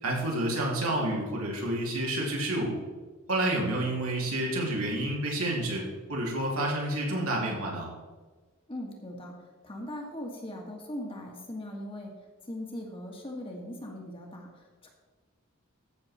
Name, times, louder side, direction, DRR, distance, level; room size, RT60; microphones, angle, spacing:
voice 1, 0.0-2.8 3.3-5.8 6.1-7.9, right 1 dB, 80° right, -2 dB, 2.9 m, -29 dB
voice 2, 8.7-12.1 12.5-14.9, left 1 dB, 25° left, 0 dB, 1.9 m, -40 dB
14.0 x 6.9 x 4.3 m, 1.4 s
head